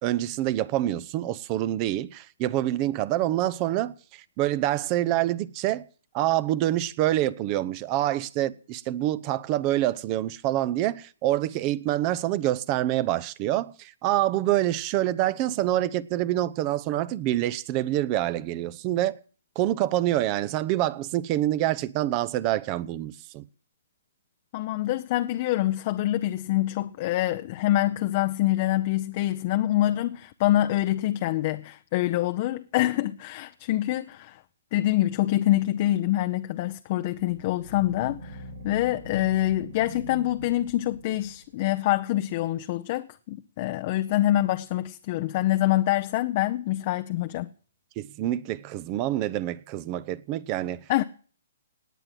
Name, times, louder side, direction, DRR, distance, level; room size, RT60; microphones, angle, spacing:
voice 1, 0.0-5.9 6.1-19.2 19.5-23.5 48.0-50.8, right 14 dB, 30° right, 0.8 m, -26 dB
voice 2, 24.5-34.4 34.7-47.5 50.9-51.0, left 15 dB, 40° left, 0.7 m, -25 dB
sound 1, 37.1-41.5, right 2 dB, 80° right, 4.8 m, -43 dB
18.5 x 9.0 x 7.8 m
figure-of-eight pair, 130°, 0 cm